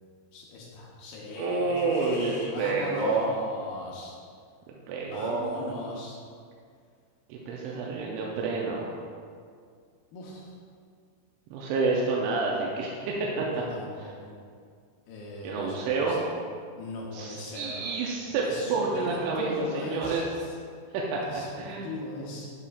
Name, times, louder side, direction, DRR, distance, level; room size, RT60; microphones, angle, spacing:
voice 1, 0.3-4.2 5.0-6.2 10.1-10.5 13.5-14.3 15.1-16.2 16.7-18.0 18.4-20.5 21.3-22.5, left 2 dB, 80° left, -4 dB, 2.2 m, -39 dB
voice 2, 1.4-3.3 4.9-5.5 7.3-8.9 11.5-13.5 15.4-16.2 17.1-18.4 18.7-20.2 20.9-21.9, right 3 dB, 85° right, -3 dB, 2.9 m, -29 dB
8.3 x 6.8 x 2.4 m, 2.1 s
omnidirectional pair, 5.6 m